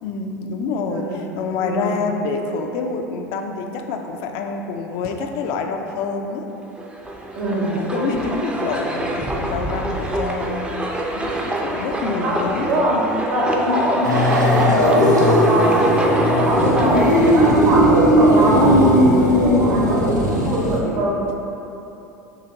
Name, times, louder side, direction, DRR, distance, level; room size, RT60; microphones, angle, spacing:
voice 1, 0.0-6.5 7.8-12.8 19.7-20.3, left 4 dB, 50° left, 3 dB, 0.4 m, -27 dB
voice 2, 0.9-1.3 1.6-1.9 7.3-8.4 12.2-12.4 12.7-13.0 13.3-18.7 19.2-20.1 20.4-21.2, right 1 dB, 55° right, -5 dB, 1.1 m, -23 dB
sound 1, 6.8-17.5, right 1 dB, 10° right, 0.5 m, -26 dB
sound 2, 14.0-20.8, equal, 90° right, 0.6 m, -16 dB
6.5 x 2.8 x 2.6 m, 2.9 s
figure-of-eight pair, 75°, 9 cm